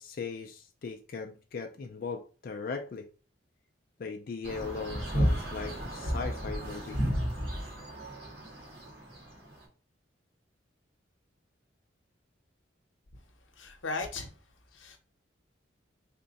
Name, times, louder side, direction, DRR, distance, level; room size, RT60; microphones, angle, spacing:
voice 1, 0.0-3.1 4.0-7.0, left 4 dB, 50° left, 0.3 m, -38 dB
sound 1, 4.4-9.5, equal, 55° right, 1.7 m, -32 dB
voice 2, 13.5-14.3 14.7-15.0, left 3 dB, 85° left, 0.8 m, -36 dB
3.5 x 2.1 x 3.9 m
head